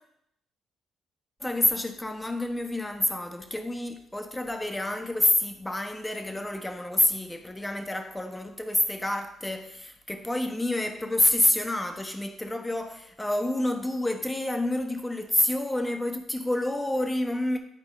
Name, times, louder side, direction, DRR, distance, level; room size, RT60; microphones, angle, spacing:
voice 1, 1.4-17.6, left 1 dB, 10° left, 1.0 m, -28 dB
9.9 x 4.2 x 3.8 m
cardioid pair, 90°, 0 cm